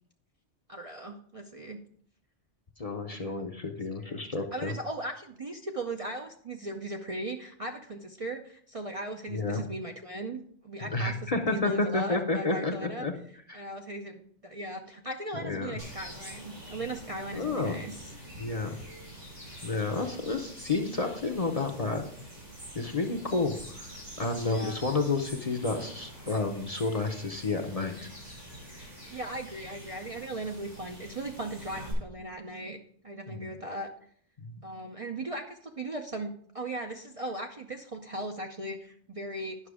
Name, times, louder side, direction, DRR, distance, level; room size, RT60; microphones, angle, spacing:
voice 1, 0.7-1.8 3.0-3.4 4.0-4.2 4.5-13.1 13.5-18.1 24.4-24.7 29.1-32.8 33.0-33.9 34.6-39.7, right 1 dB, 40° right, 3 dB, 0.6 m, -38 dB
voice 2, 2.8-4.7 9.3-9.6 10.8-13.1 13.5-13.6 15.4-15.8 17.3-17.8 18.4-18.8 19.6-22.1 22.7-28.1 33.3-33.5 34.4-34.6, left 3 dB, 35° left, 4 dB, 0.7 m, -31 dB
sound 1, 15.8-31.9, equal, 85° right, 5.3 m, -46 dB
9.8 x 6.0 x 4.8 m, 0.62 s
omnidirectional pair, 1.2 m